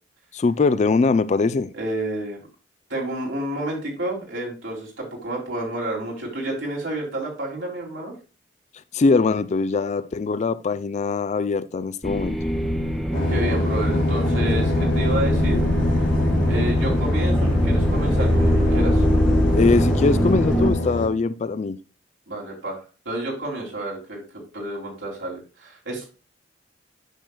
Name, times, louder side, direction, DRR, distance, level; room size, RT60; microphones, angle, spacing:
voice 1, 0.3-1.7 8.9-12.4 19.5-21.8, left 4 dB, 35° left, 0.3 m, -22 dB
voice 2, 1.7-2.4 2.9-8.1 13.3-15.6 16.5-19.0 22.3-22.8 23.0-24.2 24.5-26.1, right 1 dB, 80° right, 3.0 m, -30 dB
sound 1, 12.0-20.7, equal, ahead, 0.7 m, -21 dB
sound 2, 13.1-21.1, left 1 dB, 75° left, 1.8 m, -27 dB
9.0 x 6.5 x 2.3 m
head